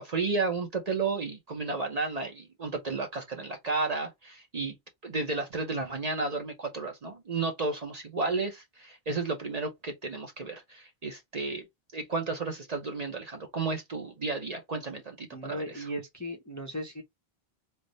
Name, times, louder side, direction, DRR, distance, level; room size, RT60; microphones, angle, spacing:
voice 1, 0.0-4.8 5.0-11.6 11.9-15.9, right 3 dB, 45° right, 0.7 m, -32 dB
voice 2, 15.3-17.0, equal, 20° left, 0.6 m, -37 dB
3.3 x 2.0 x 3.8 m
omnidirectional pair, 1.1 m